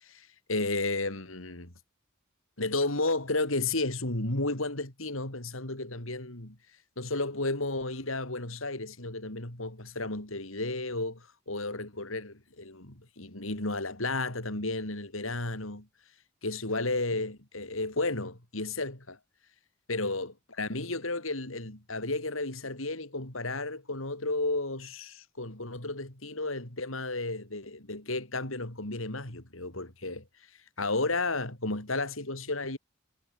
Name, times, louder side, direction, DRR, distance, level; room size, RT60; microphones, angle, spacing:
voice 1, 0.0-1.7 2.6-6.6 7.0-15.9 16.4-19.2 19.9-30.2 30.8-32.8, left 2 dB, 75° left, 4.7 m, -33 dB
head